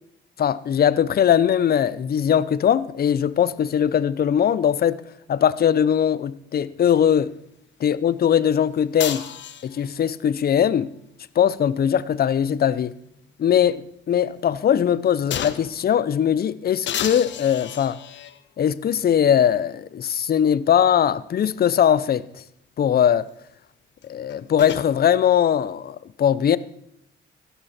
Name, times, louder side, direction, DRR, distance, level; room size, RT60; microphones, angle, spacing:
voice 1, 0.4-5.0 5.3-7.3 7.8-9.2 9.6-10.9 11.4-12.9 13.4-18.0 18.6-22.4 22.8-23.3 24.0-26.6, left 9 dB, 50° left, 0.7 m, -20 dB
sound 1, 9.0-10.0 11.7-13.3 13.7-13.8 15.3-15.8 16.9-18.4 19.3-19.4 24.0-24.9, left 9 dB, 65° left, 1.2 m, -32 dB
16.0 x 12.5 x 4.3 m
cardioid pair, 90°, 20 cm